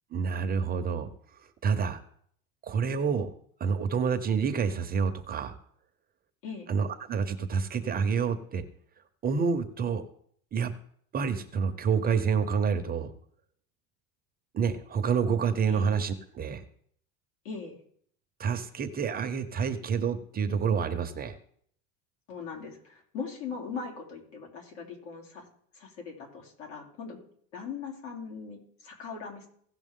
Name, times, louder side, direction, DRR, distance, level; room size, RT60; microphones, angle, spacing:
voice 1, 0.1-1.1 1.6-2.0 2.6-3.3 3.6-5.5 6.7-8.6 9.2-10.0 10.5-10.7 11.1-13.1 14.5-16.6 18.4-21.4, right 6 dB, 25° right, 8 dB, 0.7 m, -28 dB
voice 2, 22.3-25.4 25.7-27.2 27.5-29.5, left 5 dB, 80° left, 0 dB, 3.3 m, -40 dB
16.5 x 5.9 x 3.7 m, 0.63 s
supercardioid pair, 130°, 37 cm